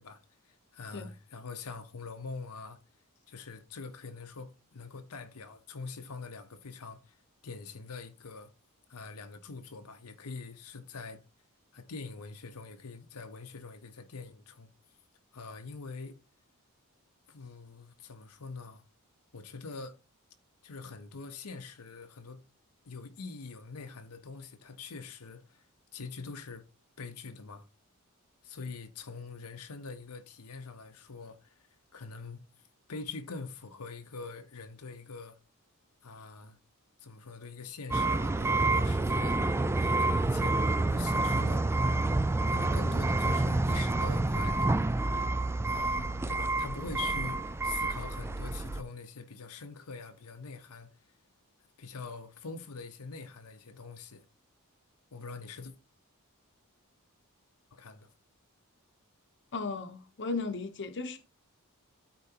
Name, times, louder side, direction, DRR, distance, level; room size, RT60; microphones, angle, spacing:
voice 1, 0.0-2.8 3.3-8.5 8.9-11.2 11.7-14.7 15.3-16.2 17.3-18.8 19.3-20.0 20.6-22.4 22.8-25.6 25.9-26.6 27.0-27.7 28.4-31.6 31.9-32.4 32.9-35.4 36.0-36.6 37.0-39.4 39.7-41.9 42.5-44.9 45.7-50.9 51.8-54.2 55.1-55.7 57.7-58.1, left 4 dB, 80° left, 0.9 m, -44 dB
sound 1, 37.9-48.8, right 2 dB, 10° right, 0.3 m, -28 dB
voice 2, 59.5-61.2, left 4 dB, 55° left, 0.9 m, -35 dB
13.0 x 4.4 x 2.8 m
head